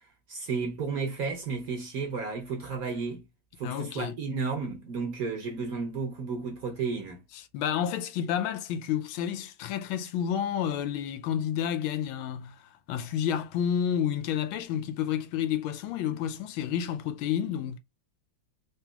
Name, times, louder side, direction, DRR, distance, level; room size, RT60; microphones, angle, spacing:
voice 1, 0.3-3.2 3.6-7.2, right 4 dB, 60° right, 1.0 m, -32 dB
voice 2, 3.6-4.2 7.3-17.8, left 9 dB, 80° left, 1.4 m, -30 dB
3.9 x 2.9 x 2.3 m
omnidirectional pair, 2.2 m